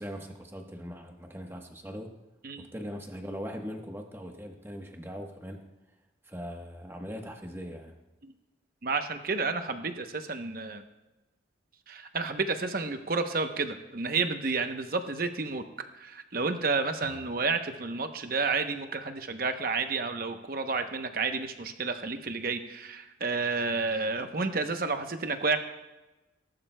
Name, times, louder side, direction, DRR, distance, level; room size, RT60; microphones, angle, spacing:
voice 1, 0.0-2.1 2.6-5.6 6.2-7.9 17.0-17.2, equal, 15° right, 3 dB, 1.1 m, -40 dB
voice 2, 8.8-10.8 11.9-15.6 16.0-25.6, right 4 dB, 50° right, 7 dB, 0.9 m, -30 dB
19.0 x 11.5 x 2.2 m, 1.1 s
head